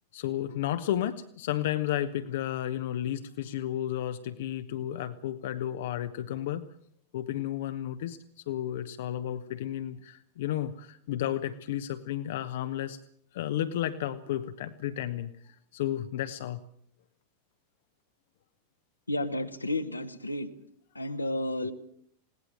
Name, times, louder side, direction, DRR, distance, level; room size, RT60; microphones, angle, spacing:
voice 1, 0.1-6.7 7.1-8.2 8.5-13.0 13.3-16.6, left 12 dB, 55° left, 10 dB, 1.0 m, -32 dB
voice 2, 19.1-20.5 20.9-21.7, left 1 dB, 85° left, 8 dB, 1.6 m, -31 dB
20.5 x 17.5 x 8.8 m, 0.66 s
figure-of-eight pair, 90°, 0 cm